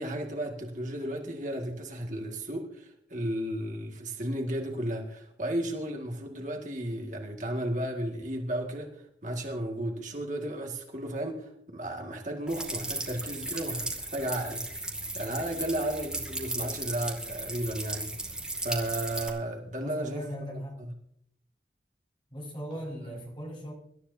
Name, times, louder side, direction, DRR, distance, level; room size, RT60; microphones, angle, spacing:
voice 1, 0.0-18.1 18.6-20.2 20.8-20.9 23.1-23.2, right 1 dB, 45° right, 1 dB, 2.0 m, -34 dB
sound 1, 12.5-19.3, right 2 dB, 5° right, 2.2 m, -36 dB
voice 2, 19.8-20.8 22.3-23.7, equal, 30° left, -2 dB, 5.0 m, -38 dB
25.5 x 13.0 x 2.8 m, 0.70 s
head